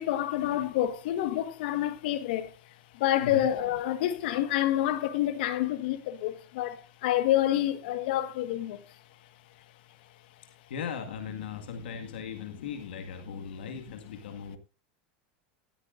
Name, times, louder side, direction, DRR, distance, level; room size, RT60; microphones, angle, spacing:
voice 1, 0.0-2.6 2.9-8.8, left 13 dB, 70° left, 1.5 m, -28 dB
voice 2, 10.7-14.6, left 6 dB, 85° left, 1.9 m, -38 dB
16.0 x 13.0 x 2.6 m
supercardioid pair, 115°, 5 cm